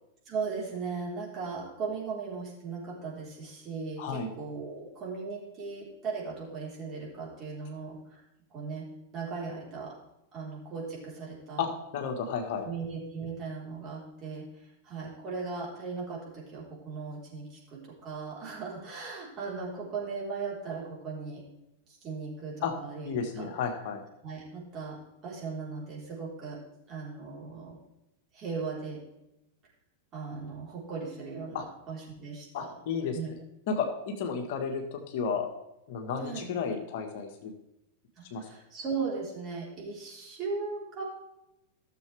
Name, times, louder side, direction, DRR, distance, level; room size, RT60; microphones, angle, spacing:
voice 1, 0.3-8.2 8.5-10.0 10.3-11.6 12.6-14.5 14.8-21.4 21.9-23.5 24.2-25.0 25.2-26.6 26.9-27.8 28.3-29.0 30.1-32.7 33.1-33.3 36.2-36.5 38.2-41.0, right 4 dB, 35° right, -4 dB, 4.2 m, -38 dB
voice 2, 4.0-4.3 11.6-12.6 22.6-22.7 23.0-24.0 31.5-31.6 32.5-33.2 33.7-35.5 35.9-37.5 38.3-38.5, left 6 dB, 55° left, 4 dB, 1.5 m, -32 dB
14.0 x 7.1 x 3.5 m, 0.88 s
figure-of-eight pair, 95°, 0 cm